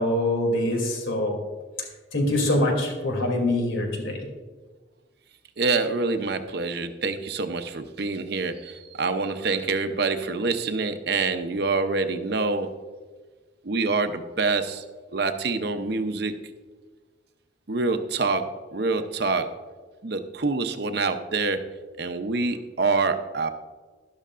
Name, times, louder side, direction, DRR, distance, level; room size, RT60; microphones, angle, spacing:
voice 1, 0.0-1.3 2.1-4.2, left 1 dB, 85° left, 1 dB, 2.9 m, -24 dB
voice 2, 5.6-12.7 13.6-14.8 15.1-16.3 17.7-18.4 18.7-19.5 20.0-21.6 22.0-23.5, right 3 dB, 55° right, 7 dB, 0.7 m, -26 dB
12.0 x 12.0 x 2.5 m, 1.4 s
head